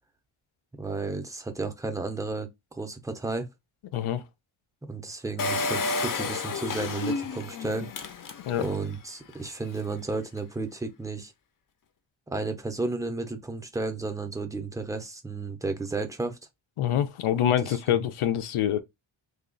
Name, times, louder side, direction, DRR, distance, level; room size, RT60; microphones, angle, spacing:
voice 1, 0.7-3.5 4.8-7.9 8.6-11.3 12.3-16.4 17.6-18.1, right 3 dB, 5° right, 0.5 m, -33 dB
voice 2, 3.9-4.2 8.5-8.6 16.8-18.8, left 10 dB, 85° left, 0.6 m, -25 dB
Engine, 5.4-8.8 9.3-9.4 9.6-9.7, left 3 dB, 45° left, 0.5 m, -31 dB
3.3 x 2.3 x 3.7 m
wide cardioid pair, 155°, 49 cm